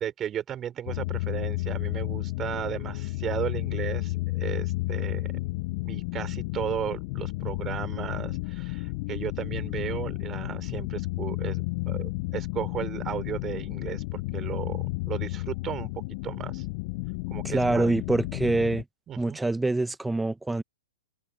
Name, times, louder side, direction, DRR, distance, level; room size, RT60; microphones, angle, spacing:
voice 1, 0.0-5.4 5.8-16.6 17.3-17.9 19.1-19.4, right 10 dB, 25° right, 6.0 m, -35 dB
sound 1, 0.9-18.8, left 23 dB, 45° left, 1.1 m, -32 dB
voice 2, 17.4-18.8 19.2-20.6, right 2 dB, 5° right, 1.4 m, -25 dB
hypercardioid pair, 115°, 0 cm